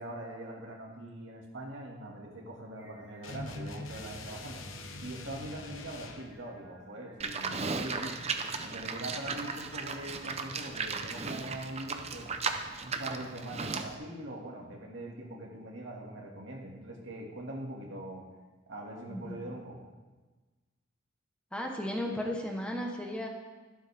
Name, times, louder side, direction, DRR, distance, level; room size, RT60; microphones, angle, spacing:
voice 1, 0.0-4.6 5.0-8.2 8.6-12.3 12.8-18.2 18.7-19.9, right 1 dB, 75° right, -1 dB, 2.2 m, -42 dB
Singing, 2.8-11.6, equal, 15° right, 3.1 m, -58 dB
sound 1, 3.2-6.3, left 2 dB, 90° left, 1.1 m, -43 dB
Livestock farm animals working animals, 7.2-13.9, right 4 dB, 35° right, 0.7 m, -36 dB
voice 2, 19.1-19.4 21.5-23.3, left 1 dB, 5° left, 0 dB, 1.2 m, -35 dB
12.5 x 11.5 x 3.5 m, 1.3 s
head